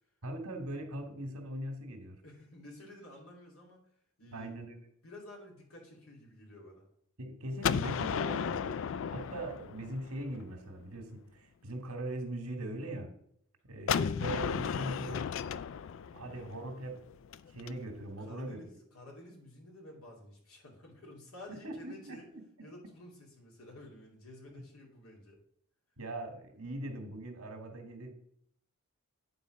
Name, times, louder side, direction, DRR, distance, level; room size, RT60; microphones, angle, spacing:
voice 1, 0.2-2.2 4.3-4.8 7.2-8.8 9.1-13.1 13.7-15.4 16.1-17.1 17.5-18.6 21.5-22.4 26.0-28.2, right 1 dB, 90° right, 5 dB, 1.7 m, -41 dB
voice 2, 2.2-3.8 4.2-4.5 5.0-6.9 18.2-18.7 18.9-22.2 22.6-25.4, left 1 dB, 80° left, -1 dB, 2.7 m, -51 dB
Gunshot gunfire, 7.6-10.4 13.9-17.7, left 7 dB, 60° left, 0.3 m, -34 dB
9.2 x 4.1 x 6.2 m, 0.69 s
head